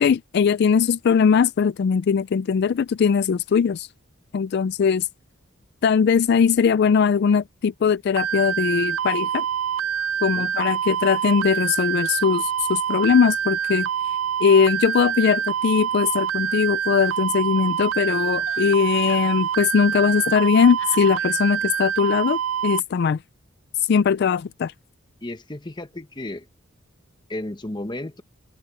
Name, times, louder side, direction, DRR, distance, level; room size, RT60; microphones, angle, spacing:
voice 1, 0.0-3.9 4.3-5.1 5.8-9.4 10.2-13.9 14.4-23.2 23.9-24.7, left 6 dB, 55° left, 0.3 m, -20 dB
sound 1, 8.2-22.8, right 8 dB, 80° right, 0.5 m, -26 dB
Giggle, 17.0-17.8 18.1-19.6 20.1-21.4, left 5 dB, 75° left, 6.8 m, -45 dB
voice 2, 25.2-26.4 27.3-28.2, left 1 dB, 20° left, 1.0 m, -33 dB
head